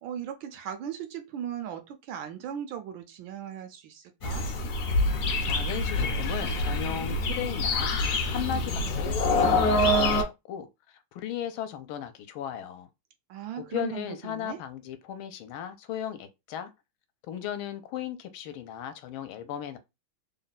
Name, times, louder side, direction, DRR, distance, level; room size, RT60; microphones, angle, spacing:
voice 1, 0.0-4.4 13.3-14.6, right 9 dB, 75° right, 1.3 m, -38 dB
sound 1, 4.2-10.2, left 2 dB, 65° left, 1.0 m, -26 dB
voice 2, 5.5-7.9 8.3-12.9 13.6-16.7 17.3-19.8, left 10 dB, 80° left, 1.4 m, -36 dB
3.6 x 2.2 x 4.0 m
omnidirectional pair, 2.3 m